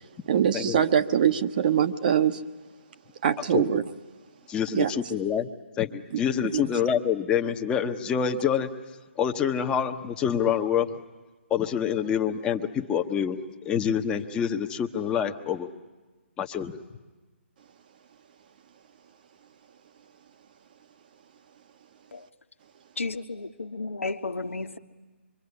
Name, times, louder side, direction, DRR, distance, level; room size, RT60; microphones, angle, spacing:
voice 1, 0.3-2.4 3.2-3.8 4.7-4.9 6.5-6.6, right 9 dB, 45° right, 1.1 m, -23 dB
voice 2, 4.5-5.5 5.8-8.7 9.2-10.9 11.5-13.4 13.6-15.7 16.4-16.7, left 8 dB, 15° left, 1.0 m, -26 dB
voice 3, 23.0-24.8, left 3 dB, 90° left, 1.4 m, -33 dB
26.0 x 24.0 x 9.7 m
figure-of-eight pair, 145°, 7 cm